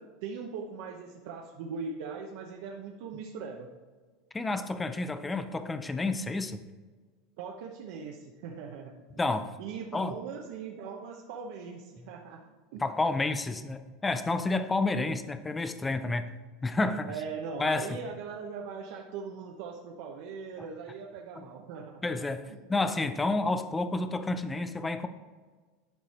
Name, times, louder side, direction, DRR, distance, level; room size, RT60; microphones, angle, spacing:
voice 1, 0.0-3.7 7.4-9.0 9.6-12.8 17.0-22.0 22.5-22.6, right 5 dB, 60° right, 0 dB, 0.9 m, -40 dB
voice 2, 4.3-6.6 9.2-9.5 9.9-10.2 12.8-16.3 16.6-17.1 17.6-17.9 20.6-20.7 21.4-21.5 22.0-25.1, left 2 dB, 10° left, 10 dB, 0.4 m, -30 dB
12.0 x 4.9 x 4.3 m, 1.4 s
supercardioid pair, 165°, 0 cm